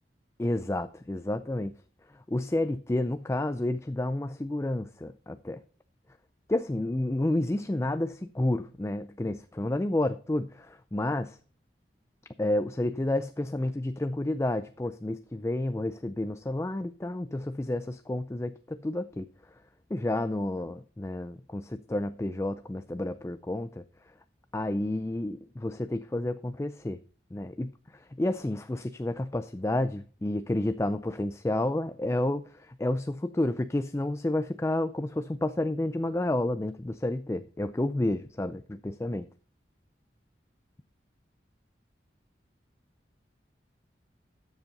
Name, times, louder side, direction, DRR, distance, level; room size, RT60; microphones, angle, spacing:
voice 1, 0.4-1.7 2.3-5.6 6.5-11.4 12.4-19.3 19.9-23.8 24.5-27.0 27.3-39.3, left 1 dB, 15° left, 0.4 m, -30 dB
13.0 x 7.2 x 4.0 m
head